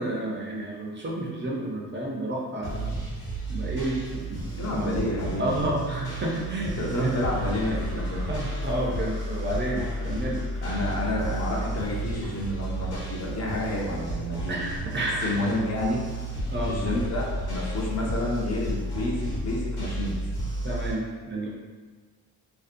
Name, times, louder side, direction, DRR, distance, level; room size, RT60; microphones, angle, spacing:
voice 1, 0.0-2.9 3.5-5.0 5.4-7.1 7.9-8.0 8.3-10.4 14.5-15.4 16.5-16.7 20.6-21.5, right 1 dB, 30° right, -3 dB, 0.4 m, -30 dB
sound 1, 2.6-20.9, right 1 dB, 85° left, 1.0 m, -32 dB
voice 2, 4.6-5.4 6.8-8.3 10.6-14.6 15.2-16.1 16.7-20.2, left 1 dB, 45° left, -3 dB, 0.5 m, -29 dB
sound 2, 5.9-14.0, right 1 dB, 90° right, 0.6 m, -47 dB
2.5 x 2.0 x 2.5 m, 1.4 s
cardioid pair, 85°, 37 cm